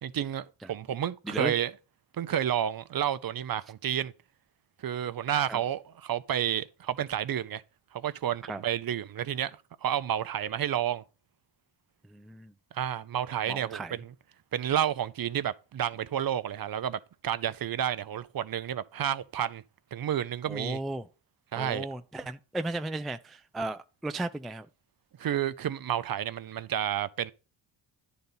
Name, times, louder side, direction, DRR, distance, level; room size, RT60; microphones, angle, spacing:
voice 1, 0.0-1.7 2.2-4.1 4.8-7.6 7.9-11.0 12.7-14.1 14.5-19.6 19.9-20.8 21.5-21.9 25.2-27.3, right 10 dB, 45° right, 0.6 m, -30 dB
voice 2, 12.1-12.5 13.5-14.0 20.5-21.1 21.6-24.7, right 2 dB, ahead, 0.3 m, -35 dB
10.5 x 4.1 x 5.5 m
cardioid pair, 65°, 49 cm